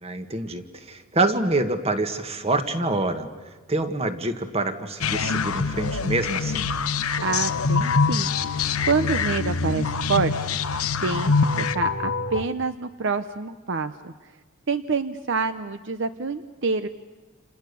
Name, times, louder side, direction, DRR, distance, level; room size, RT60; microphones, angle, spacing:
voice 1, 0.0-3.3 3.7-6.7, right 2 dB, 30° right, 8 dB, 1.7 m, -26 dB
sound 1, 5.0-11.8, left 4 dB, 90° left, 1.0 m, -25 dB
sound 2, 7.1-12.4, left 4 dB, 75° left, 1.7 m, -31 dB
voice 2, 7.2-8.3 8.9-10.5 11.0-14.1 14.7-16.9, right 4 dB, 60° right, 10 dB, 0.8 m, -27 dB
29.5 x 28.5 x 6.9 m, 1.3 s
head